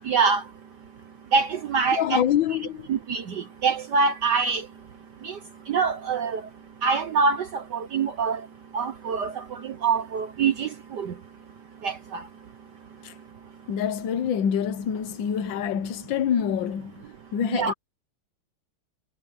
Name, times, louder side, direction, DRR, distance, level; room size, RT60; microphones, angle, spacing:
voice 1, 0.0-2.2 2.9-11.3 11.7-13.7 17.5-17.7, right 5 dB, 60° right, 1.4 m, -26 dB
voice 2, 1.9-2.9 13.0-13.1 13.7-17.0 17.3-17.7, left 9 dB, 65° left, 1.7 m, -26 dB
omnidirectional pair, 2.3 m